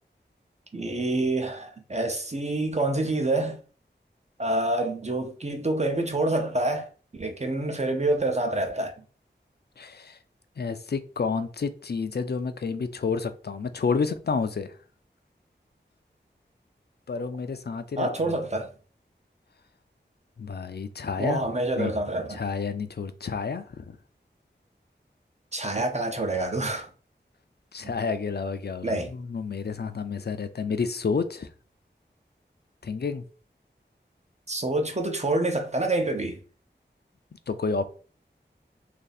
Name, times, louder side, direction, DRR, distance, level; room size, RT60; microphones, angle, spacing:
voice 1, 0.7-3.6 4.4-6.9 7.1-8.9 18.0-18.7 21.2-22.4 25.5-26.9 27.8-27.9 28.8-29.1 34.5-36.4, right 2 dB, 35° right, 0.7 m, -27 dB
voice 2, 9.8-10.2 10.6-14.7 17.1-18.4 20.4-21.4 21.8-21.9 22.3-24.0 27.7-31.5 32.8-33.2 37.5-37.9, left 5 dB, 60° left, 0.4 m, -30 dB
2.8 x 2.7 x 4.0 m
wide cardioid pair, 60°, 19 cm